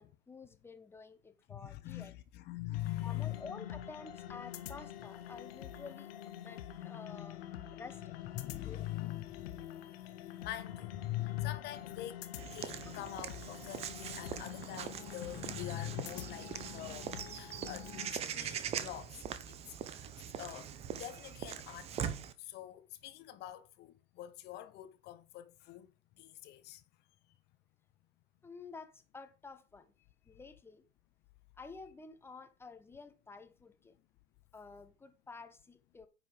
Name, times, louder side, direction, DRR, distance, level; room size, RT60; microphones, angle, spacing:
voice 1, 0.0-2.1 3.0-7.4 7.7-8.1 8.7-8.8 12.9-13.1 28.4-29.9 30.3-30.8 31.6-33.9 34.5-36.1, left 4 dB, 5° left, 1.0 m, -51 dB
voice 2, 1.5-3.5 8.3-9.5 10.4-19.2 19.5-19.6 19.9-20.1 20.4-25.9 26.2-26.8, left 14 dB, 25° left, 1.2 m, -43 dB
sound 1, 2.7-18.1, left 11 dB, 50° left, 1.5 m, -47 dB
Walk footsteps / Bird vocalization bird call bird song, 12.4-22.3, right 9 dB, 15° right, 0.7 m, -42 dB
9.8 x 5.4 x 5.1 m
hypercardioid pair, 125°, 39 cm